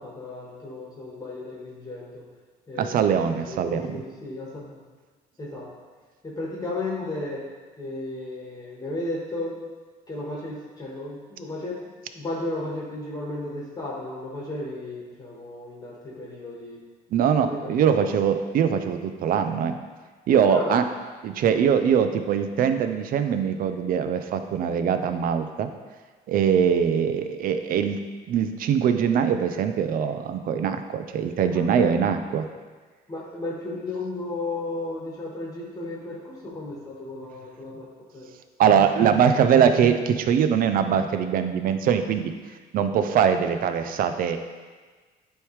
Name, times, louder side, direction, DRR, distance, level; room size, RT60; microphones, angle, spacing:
voice 1, 0.0-2.2 2.7-4.8 5.4-5.7 6.2-7.4 7.8-9.6 10.1-11.8 12.1-16.8 17.2-18.1 20.5-20.8 31.4-31.9 33.1-38.3, left 2 dB, 20° left, -4 dB, 1.5 m, -34 dB
voice 2, 2.8-4.0 17.1-19.7 20.3-20.8 21.2-25.7 26.3-28.0 28.3-32.5 38.6-42.3 42.7-44.4, right 7 dB, 55° right, 8 dB, 0.5 m, -22 dB
9.2 x 3.2 x 3.2 m, 1.4 s
cardioid pair, 110°, 17 cm